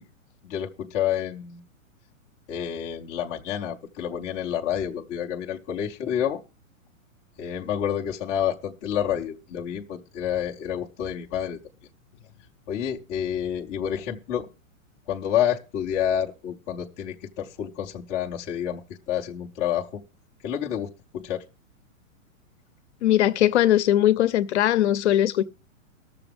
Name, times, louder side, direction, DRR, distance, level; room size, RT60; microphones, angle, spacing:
voice 1, 0.4-1.6 2.5-6.4 7.4-11.6 12.7-14.5 15.1-18.8 19.1-20.0 20.4-21.4, left 9 dB, 15° left, 0.5 m, -29 dB
voice 2, 23.0-25.4, left 12 dB, 55° left, 0.7 m, -20 dB
19.5 x 6.8 x 3.5 m
hypercardioid pair, 155°, 41 cm